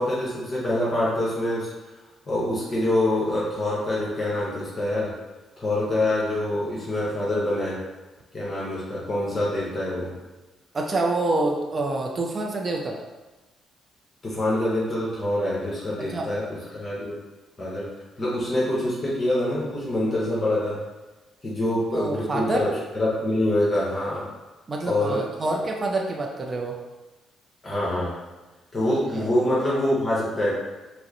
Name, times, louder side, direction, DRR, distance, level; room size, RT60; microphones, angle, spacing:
voice 1, 0.0-1.7 2.3-5.1 5.6-7.8 8.3-10.1 14.2-17.2 17.6-17.9 18.2-20.8 21.4-22.7 22.9-24.2 24.8-25.2 27.6-28.1 28.7-30.5, left 1 dB, 30° left, -7 dB, 1.1 m, -25 dB
voice 2, 10.7-13.0 16.1-16.3 21.9-22.7 24.7-26.8 29.2-29.3, right 2 dB, 35° right, 1 dB, 0.4 m, -27 dB
4.6 x 2.1 x 3.0 m, 1.2 s
cardioid pair, 90°, 0 cm